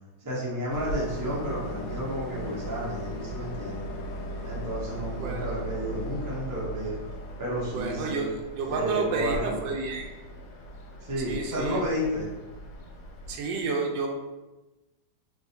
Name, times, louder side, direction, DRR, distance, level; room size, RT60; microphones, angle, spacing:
voice 1, 0.2-3.9 4.4-7.0 7.4-8.2 8.7-9.6 11.0-12.3, equal, 30° right, -6 dB, 0.3 m, -31 dB
Train, 0.7-13.3, equal, 90° left, 1.3 m, -38 dB
voice 2, 7.7-8.3 8.6-10.1 11.3-11.8 13.3-14.1, right 4 dB, 85° right, 2 dB, 1.3 m, -30 dB
3.8 x 2.4 x 2.7 m, 1.1 s
omnidirectional pair, 1.9 m